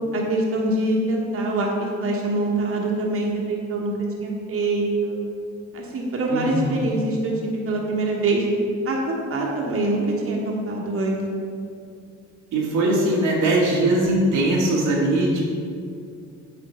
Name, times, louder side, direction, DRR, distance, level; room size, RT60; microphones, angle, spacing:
voice 1, 0.1-3.9 4.2-5.2 5.7-8.4 8.8-11.2, right 2 dB, 50° right, -2 dB, 1.2 m, -24 dB
voice 2, 6.3-6.8 12.5-15.4, right 1 dB, 90° right, -4 dB, 1.6 m, -21 dB
8.6 x 4.4 x 4.3 m, 2.3 s
cardioid pair, 90°, 30 cm